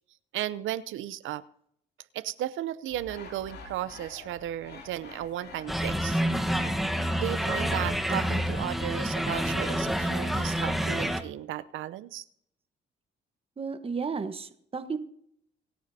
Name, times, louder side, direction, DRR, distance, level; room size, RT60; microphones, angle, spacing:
voice 1, 0.3-1.4 2.1-6.2 7.2-12.2, right 13 dB, 80° right, 16 dB, 0.7 m, -35 dB
sound 1, 2.9-10.4, left 3 dB, 55° left, 3.0 m, -48 dB
sound 2, 5.7-11.2, equal, ahead, 1.1 m, -28 dB
voice 2, 13.6-15.0, right 5 dB, 30° right, 8 dB, 1.2 m, -33 dB
26.0 x 9.3 x 2.8 m, 0.69 s
cardioid pair, 90°, 20 cm